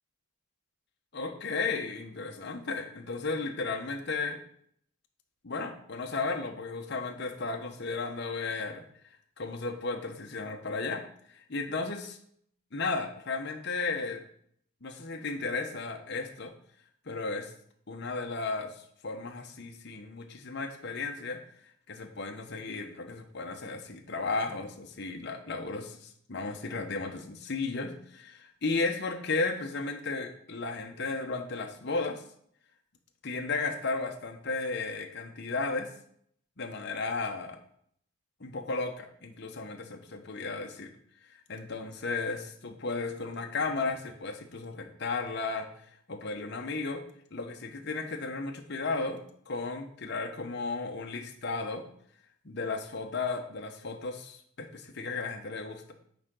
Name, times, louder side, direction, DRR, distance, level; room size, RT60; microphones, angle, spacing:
voice 1, 1.1-4.4 5.4-8.8 9.4-12.2 12.7-14.2 14.8-16.5 17.1-17.5 17.9-21.4 21.9-32.2 33.2-35.9 36.6-37.6 38.4-40.9 41.3-47.0 47.3-49.2 49.5-51.8 52.4-55.9, left 3 dB, 55° left, 4 dB, 1.0 m, -34 dB
9.4 x 5.2 x 3.8 m, 0.65 s
head